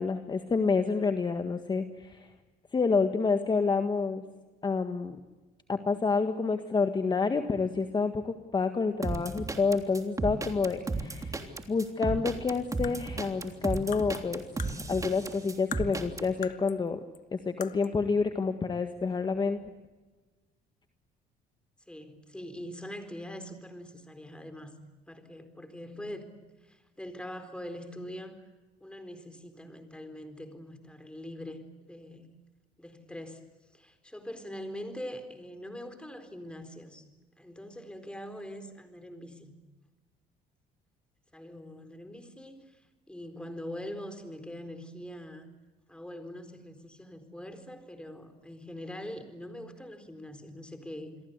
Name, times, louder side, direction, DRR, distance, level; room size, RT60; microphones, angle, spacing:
voice 1, 0.0-2.3 2.7-4.2 4.6-5.2 5.7-17.0 17.3-19.6, left 4 dB, 25° left, 8 dB, 1.7 m, -28 dB
sound 1, 9.0-16.3, right 3 dB, 20° right, 3.2 m, -34 dB
sound 2, 12.6-15.4 15.7-16.9 17.1-17.2 17.6-18.0, left 9 dB, 50° left, 1.3 m, -44 dB
voice 2, 21.9-24.7 25.1-26.3 26.6-28.4 28.8-31.6 31.9-32.3 32.8-33.4 33.7-37.1 37.4-39.6 41.3-45.5 45.9-51.1, left 1 dB, 5° left, 8 dB, 4.3 m, -43 dB
28.5 x 22.5 x 8.2 m, 1.2 s
cardioid pair, 110°, 17 cm